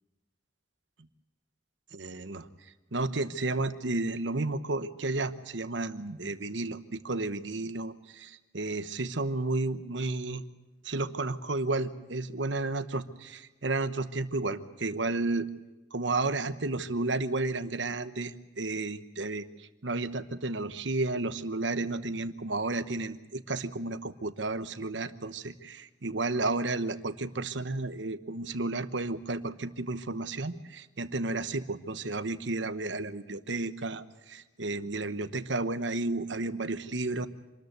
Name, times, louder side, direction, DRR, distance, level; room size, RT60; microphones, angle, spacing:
voice 1, 1.9-2.5 2.9-10.4 10.8-15.5 15.9-37.3, right 2 dB, 80° right, 11 dB, 1.1 m, -32 dB
26.5 x 13.5 x 9.3 m, 1.1 s
head